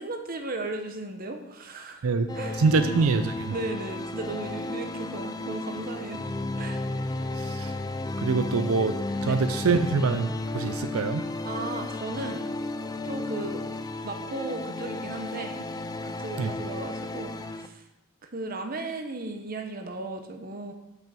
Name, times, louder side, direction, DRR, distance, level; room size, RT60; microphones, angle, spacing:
voice 1, 0.0-2.1 2.3-2.9 3.5-6.3 6.6-6.8 9.2-9.4 11.4-12.5 13.0-13.6 14.0-15.7 16.0-17.8 18.2-20.7, right 2 dB, 40° right, 5 dB, 0.9 m, -36 dB
sound 1, 2.3-17.7, left 2 dB, 20° left, 0.3 m, -33 dB
voice 2, 2.6-3.5 7.4-7.7 8.2-9.0 9.2-11.2 16.4-16.5, right 4 dB, 80° right, 9 dB, 0.5 m, -25 dB
6.0 x 5.9 x 6.9 m, 0.94 s
head